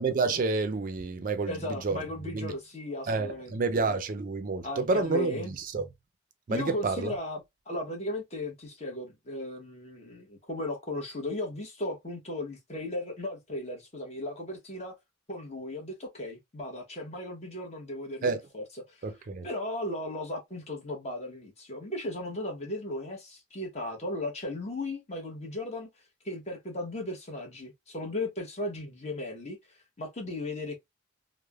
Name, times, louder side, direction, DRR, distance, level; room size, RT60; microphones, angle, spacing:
voice 1, 0.0-2.5 3.1-5.8 6.5-7.1 18.2-18.4 19.0-19.5, right 3 dB, 45° right, 0.4 m, -29 dB
voice 2, 1.5-3.5 4.6-5.5 6.5-15.0 15.3-19.1 19.4-25.9 26.2-29.6 30.0-30.8, left 1 dB, 35° left, 0.9 m, -36 dB
3.1 x 2.1 x 2.2 m
head